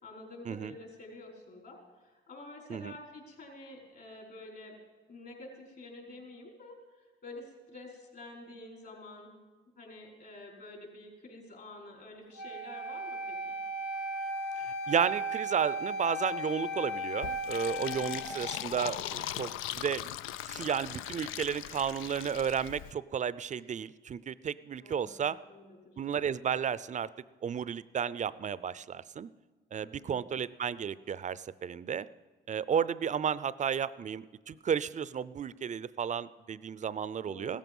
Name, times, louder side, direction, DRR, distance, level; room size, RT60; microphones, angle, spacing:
voice 1, 0.0-4.7 5.1-6.8 7.2-9.4 9.8-13.6 17.7-18.0 24.8-26.0 29.8-30.2 37.2-37.6, left 2 dB, 55° left, -1 dB, 5.0 m, -49 dB
Wind instrument woodwind instrument, 12.4-18.3, equal, 75° left, 1.8 m, -36 dB
voice 2, 14.6-20.1 20.4-25.4 26.0-27.1 27.4-29.3 29.7-32.1 32.5-37.6, right 7 dB, 40° right, 18 dB, 0.5 m, -33 dB
Fill (with liquid), 17.2-22.9, left 13 dB, 90° left, 0.4 m, -40 dB
16.5 x 13.5 x 5.4 m, 1.3 s
cardioid pair, 90°, 20 cm